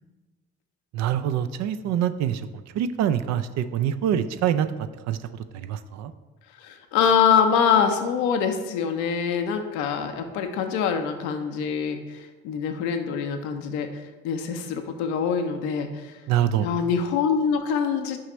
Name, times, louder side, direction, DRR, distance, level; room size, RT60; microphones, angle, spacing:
voice 1, 0.9-2.5 2.7-5.2 5.6-6.1 16.3-16.7, right 10 dB, 65° right, 12 dB, 0.5 m, -25 dB
voice 2, 6.6-16.2 16.6-18.2, left 7 dB, 80° left, 6 dB, 0.7 m, -24 dB
6.4 x 5.0 x 4.3 m, 1.3 s
hypercardioid pair, 55°, 29 cm